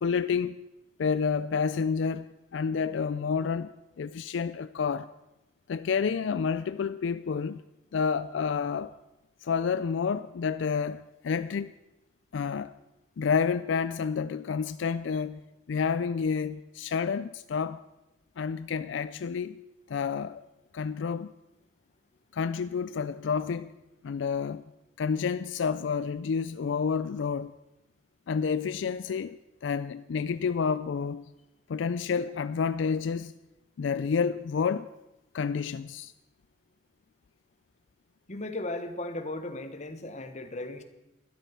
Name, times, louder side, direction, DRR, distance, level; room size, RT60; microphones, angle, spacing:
voice 1, 0.0-0.7 1.0-5.1 5.7-7.6 7.9-8.9 9.4-11.7 12.3-12.7 13.2-15.4 15.7-17.8 18.4-19.6 19.9-20.4 20.7-21.3 22.3-23.7 24.0-24.6 25.0-27.5 28.3-31.3 31.7-33.3 33.8-34.9 35.3-36.1, left 6 dB, 75° left, 0.4 m, -29 dB
voice 2, 38.3-40.8, left 2 dB, 35° left, 1.2 m, -36 dB
12.5 x 12.5 x 5.8 m
head